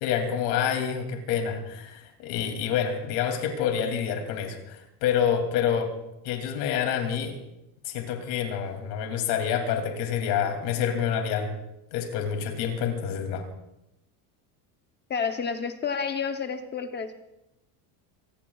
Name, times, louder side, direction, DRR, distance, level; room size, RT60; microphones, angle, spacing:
voice 1, 0.0-5.9 6.2-7.4 7.8-11.5 11.9-13.5, left 8 dB, 70° left, 4 dB, 2.8 m, -27 dB
voice 2, 15.1-17.2, left 6 dB, 20° left, 7 dB, 0.8 m, -30 dB
25.5 x 19.0 x 2.4 m, 0.87 s
cardioid pair, 165°, 48 cm